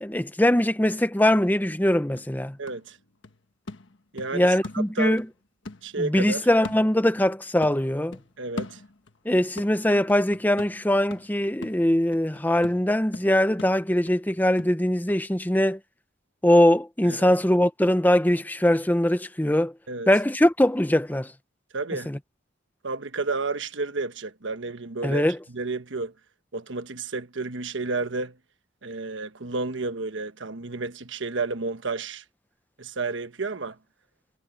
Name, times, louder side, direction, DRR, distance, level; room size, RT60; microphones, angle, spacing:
voice 1, 0.0-2.6 4.3-5.3 6.0-8.2 9.2-15.8 16.4-19.7 20.1-21.3 22.1-22.2 25.0-25.4, left 1 dB, 10° left, 0.9 m, -22 dB
sound 1, 1.7-1.8 2.2-5.3 5.6-7.4 7.6-9.2 9.6-15.2 15.6-15.7, left 2 dB, 80° left, 1.4 m, -42 dB
voice 2, 2.6-3.0 4.1-5.2 5.8-6.4 8.4-8.8 17.1-17.3 19.9-20.1 21.7-22.1 22.8-25.2 25.5-26.1 26.5-28.4 28.8-32.2 32.8-33.8, right 3 dB, 80° right, 1.3 m, -31 dB
head